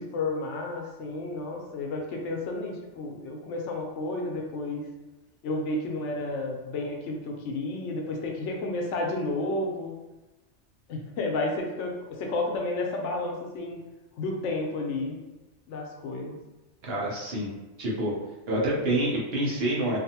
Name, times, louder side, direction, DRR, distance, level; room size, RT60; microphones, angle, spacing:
voice 1, 0.0-4.9 5.4-9.9 10.9-13.8 14.2-15.1 15.7-16.4, left 2 dB, 80° left, 1 dB, 0.9 m, -31 dB
voice 2, 16.8-17.5 17.8-18.1 18.5-20.0, right 1 dB, 60° right, -4 dB, 0.9 m, -27 dB
2.6 x 2.4 x 2.7 m, 1.1 s
omnidirectional pair, 1.2 m